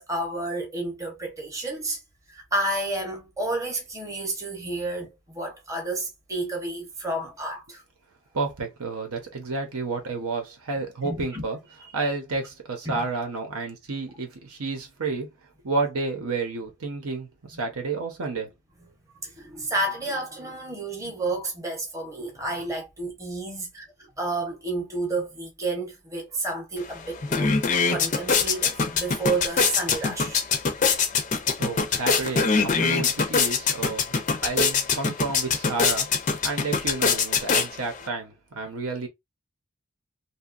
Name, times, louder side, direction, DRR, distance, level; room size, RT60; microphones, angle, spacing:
voice 1, 0.0-2.0 2.3-7.8 11.0-11.4 12.8-13.0 19.2-27.6 27.9-30.4, right 2 dB, 15° right, 0.7 m, -31 dB
voice 2, 8.3-11.6 11.9-15.3 15.6-18.5 31.6-34.2 34.4-39.1, right 3 dB, 85° right, 0.9 m, -31 dB
sound 1, 26.8-26.9 27.2-38.1, left 5 dB, 35° left, 0.4 m, -24 dB
2.7 x 2.3 x 2.4 m
head